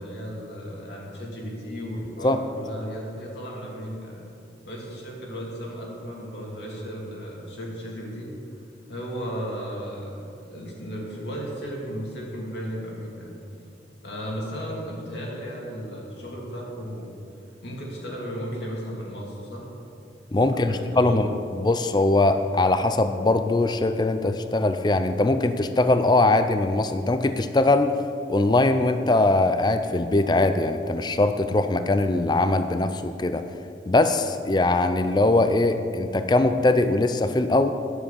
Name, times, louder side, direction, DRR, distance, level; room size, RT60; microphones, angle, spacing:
voice 1, 0.0-4.3 4.6-8.3 8.9-13.3 14.0-17.1 17.6-19.7 20.5-21.2, equal, 65° left, -3 dB, 2.8 m, -35 dB
voice 2, 20.3-21.3 21.6-27.9 28.3-33.4 33.9-37.7, left 2 dB, 25° left, 9 dB, 0.4 m, -21 dB
9.8 x 7.7 x 8.4 m, 2.6 s
head